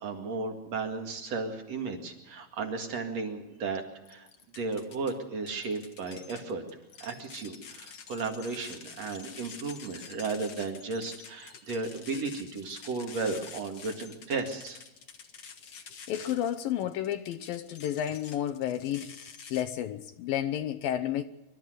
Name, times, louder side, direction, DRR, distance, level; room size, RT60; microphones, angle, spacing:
voice 1, 0.0-3.8 4.1-4.3 4.6-6.6 7.0-14.8, right 4 dB, 45° right, 2.8 m, -34 dB
sound 1, 4.1-5.1 5.5-19.6, left 6 dB, 55° left, 1.6 m, -48 dB
voice 2, 16.1-19.2 19.5-21.2, left 11 dB, 75° left, 2.3 m, -31 dB
26.0 x 13.0 x 8.0 m
omnidirectional pair, 4.6 m